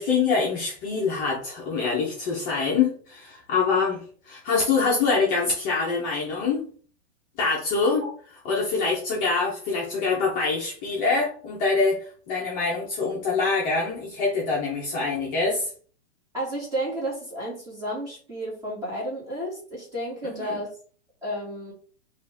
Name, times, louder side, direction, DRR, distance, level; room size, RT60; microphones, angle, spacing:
voice 1, 0.0-4.0 4.3-6.7 7.4-8.0 8.4-15.7 20.2-20.6, left 4 dB, 25° left, -4 dB, 0.9 m, -25 dB
voice 2, 16.3-20.7 21.2-21.7, right 1 dB, 10° right, -5 dB, 2.0 m, -32 dB
4.9 x 2.7 x 3.5 m, 0.43 s
hypercardioid pair, 160°, 34 cm